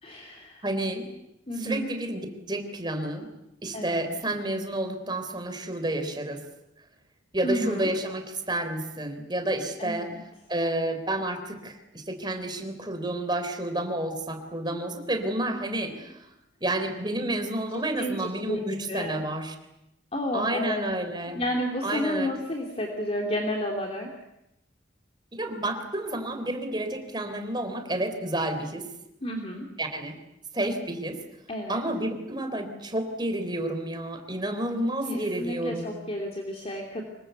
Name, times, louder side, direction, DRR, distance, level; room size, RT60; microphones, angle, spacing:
voice 1, 0.0-0.6 1.5-1.9 3.7-4.1 7.4-7.9 9.8-10.2 14.7-14.8 17.7-18.6 18.9-19.2 20.1-20.9 21.3-24.1 29.2-29.7 31.5-31.8 35.0-37.0, equal, 30° left, 1 dB, 3.0 m, -31 dB
voice 2, 0.6-1.1 1.6-3.3 3.6-6.4 7.3-10.1 10.5-16.3 16.6-19.5 20.3-21.4 21.8-22.3 25.3-28.9 29.8-30.2 30.5-31.2 31.7-36.0, right 1 dB, 20° right, 6 dB, 3.8 m, -30 dB
26.0 x 22.5 x 8.2 m, 0.86 s
head